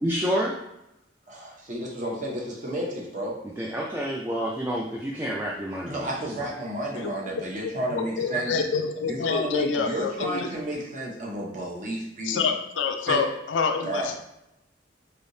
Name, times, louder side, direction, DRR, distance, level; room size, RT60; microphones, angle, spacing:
voice 1, 0.0-0.5 3.6-6.5, equal, 15° right, -3 dB, 0.3 m, -29 dB
voice 2, 1.3-3.4 5.9-8.5 9.1-12.5 13.1-13.2 13.8-14.2, right 1 dB, 45° right, -3 dB, 0.8 m, -31 dB
voice 3, 7.6-10.5 12.2-14.2, left 5 dB, 80° left, 5 dB, 0.4 m, -27 dB
3.3 x 2.7 x 2.6 m, 0.84 s
head